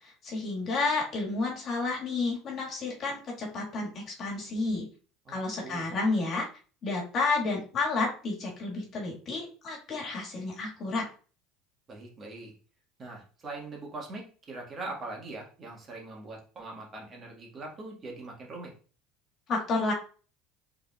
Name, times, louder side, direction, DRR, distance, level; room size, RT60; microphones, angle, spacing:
voice 1, 0.0-4.8 5.3-6.5 6.8-11.1 19.5-19.9, left 3 dB, 45° left, -1 dB, 1.7 m, -31 dB
voice 2, 5.3-5.9 11.9-12.5 13.0-18.7, right 2 dB, 35° right, -1 dB, 1.6 m, -42 dB
4.6 x 3.6 x 2.4 m, 0.38 s
supercardioid pair, 90°, 0 cm